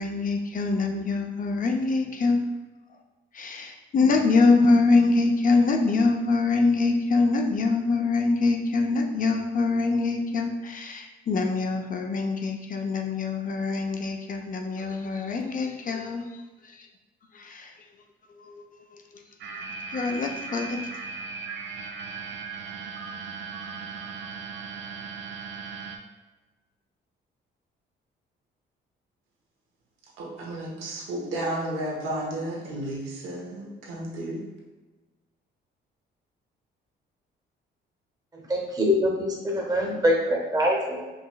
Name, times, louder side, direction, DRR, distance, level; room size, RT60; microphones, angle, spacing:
voice 1, 0.0-2.6 2.9-3.0 3.3-16.9 17.3-17.9 18.3-19.2 19.5-19.6 19.9-20.9, left 3 dB, 45° left, 3 dB, 0.5 m, -24 dB
sound 1, 19.4-26.0, right 5 dB, 65° right, 0.6 m, -37 dB
voice 2, 30.2-34.4, right 1 dB, 90° right, -3 dB, 1.0 m, -32 dB
voice 3, 38.3-41.1, equal, 20° right, -1 dB, 0.9 m, -24 dB
4.9 x 3.0 x 2.3 m, 1.2 s
cardioid pair, 90°, 20 cm